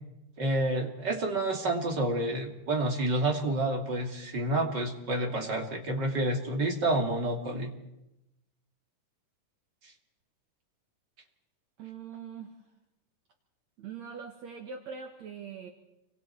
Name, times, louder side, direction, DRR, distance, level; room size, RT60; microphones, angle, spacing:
voice 1, 0.4-7.7, right 1 dB, 35° right, 2 dB, 2.8 m, -29 dB
voice 2, 11.8-12.6 13.8-15.7, right 6 dB, 60° right, 3 dB, 2.6 m, -42 dB
29.5 x 24.5 x 4.6 m, 0.91 s
omnidirectional pair, 3.9 m